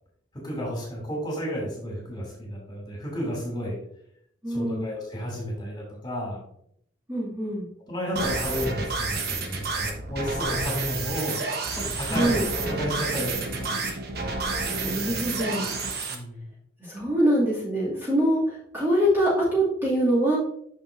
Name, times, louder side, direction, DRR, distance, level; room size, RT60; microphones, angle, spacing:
voice 1, 0.4-3.8 4.5-6.4 7.9-11.4 11.7-13.8 14.7-15.1 16.1-16.5, equal, 25° left, -3 dB, 2.6 m, -32 dB
voice 2, 4.4-4.8 7.1-7.7 12.1-12.4 14.8-15.7 16.9-20.4, equal, 10° right, -8 dB, 2.3 m, -24 dB
sound 1, 8.2-16.2, right 3 dB, 50° right, 1.1 m, -29 dB
7.9 x 6.3 x 2.6 m, 0.70 s
head